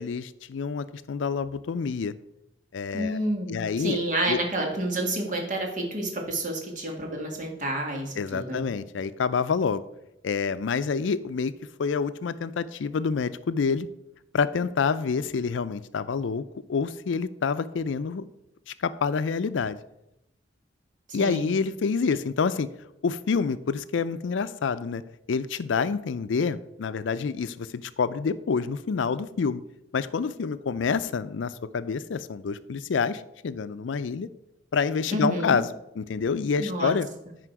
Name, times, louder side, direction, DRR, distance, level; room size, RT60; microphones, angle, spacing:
voice 1, 0.0-2.1 2.7-3.2 3.5-4.0 4.3-4.4 8.2-9.8 10.2-11.5 11.8-13.9 14.3-16.4 16.7-18.3 18.7-19.8 21.1-22.7 23.0-25.0 25.3-29.6 29.9-34.3 34.7-35.7 36.0-37.1, left 5 dB, 80° left, 14 dB, 0.4 m, -27 dB
voice 2, 2.9-8.7 21.2-21.5 35.1-35.6 36.6-36.9, right 1 dB, 45° right, 1 dB, 1.8 m, -29 dB
9.8 x 5.0 x 4.6 m, 0.88 s
head